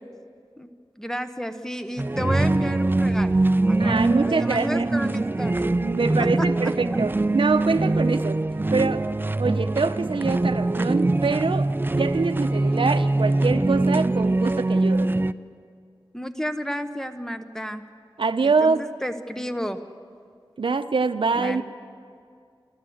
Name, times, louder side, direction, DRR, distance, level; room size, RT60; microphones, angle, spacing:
voice 1, 1.0-3.4 3.7-5.7 6.2-6.5 16.1-17.8 18.4-19.8 21.3-21.6, equal, 5° left, 8 dB, 1.0 m, -32 dB
sound 1, 2.0-15.3, right 2 dB, 25° right, 0.4 m, -23 dB
voice 2, 3.8-4.9 5.8-8.4 8.7-9.1 9.4-11.7 12.0-15.1 18.2-18.8 20.6-21.6, right 4 dB, 70° right, 9 dB, 0.8 m, -24 dB
29.0 x 12.5 x 7.9 m, 2.3 s
wide cardioid pair, 80°, 9 cm